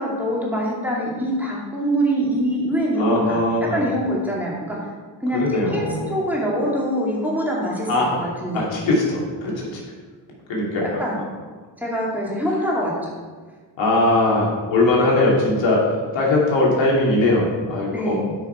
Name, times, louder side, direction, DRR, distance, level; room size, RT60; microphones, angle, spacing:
voice 1, 0.0-3.4 3.7-4.9 5.2-5.4 5.7-8.6 11.0-11.2 11.8-13.1 17.9-18.2, equal, 5° right, -5 dB, 2.5 m, -24 dB
voice 2, 3.0-3.8 5.3-6.2 7.9-8.1 8.5-9.8 10.5-10.8 13.8-15.9 16.1-18.2, left 2 dB, 75° left, -3 dB, 2.7 m, -20 dB
9.4 x 6.0 x 4.5 m, 1.5 s
cardioid pair, 90°, 45 cm